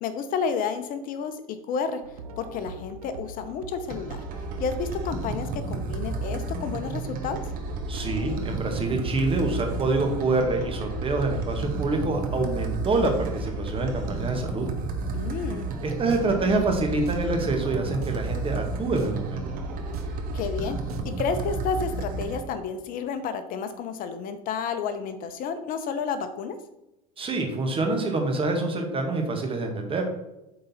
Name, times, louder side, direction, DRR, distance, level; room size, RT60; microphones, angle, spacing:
voice 1, 0.0-2.0 2.4-4.2 4.6-7.4 15.1-15.7 20.3-20.8 21.0-26.6, left 6 dB, 50° left, 10 dB, 0.7 m, -31 dB
sound 1, 2.0-21.0, right 2 dB, 90° right, 0.7 m, -42 dB
sound 2, 3.9-22.4, right 3 dB, 50° right, 1.2 m, -32 dB
voice 2, 7.9-14.6 15.8-19.4 27.2-30.0, right 3 dB, 30° right, 3 dB, 1.6 m, -26 dB
7.8 x 3.9 x 4.3 m, 0.92 s
hypercardioid pair, 85°, 19 cm